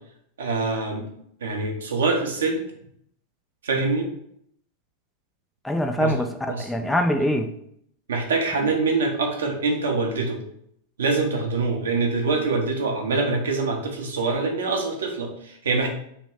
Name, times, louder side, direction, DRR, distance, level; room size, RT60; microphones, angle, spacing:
voice 1, 0.4-1.1 1.4-2.6 3.6-4.1 6.0-6.2 6.5-6.7 8.1-10.4 11.0-15.9, right 3 dB, 65° right, 1 dB, 0.9 m, -24 dB
voice 2, 5.6-7.5, equal, 5° left, 4 dB, 0.4 m, -24 dB
3.2 x 3.0 x 4.5 m, 0.69 s
figure-of-eight pair, 90°, 0 cm